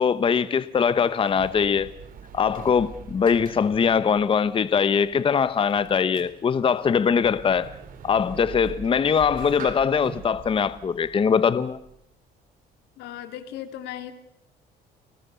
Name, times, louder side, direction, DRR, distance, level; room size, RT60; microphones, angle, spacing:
voice 1, 0.0-1.9 2.3-7.7 8.0-11.8, left 6 dB, 30° left, 0.9 m, -22 dB
Sliding door, 0.9-12.1, right 7 dB, 55° right, 3.6 m, -44 dB
voice 2, 13.0-14.1, left 11 dB, 85° left, 2.7 m, -36 dB
29.0 x 20.5 x 6.9 m
cardioid pair, 110°, 17 cm